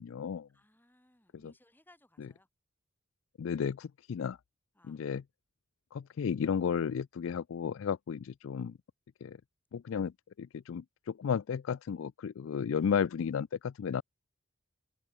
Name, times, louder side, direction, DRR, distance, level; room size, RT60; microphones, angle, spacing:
voice 1, 0.0-0.5 3.4-4.4 4.9-5.2 5.9-8.7 9.2-9.4 9.7-10.1 10.4-14.0, left 7 dB, 60° left, 0.3 m, -33 dB
voice 2, 0.5-2.5 4.7-5.0, left 1 dB, 10° left, 3.3 m, -64 dB
open air
head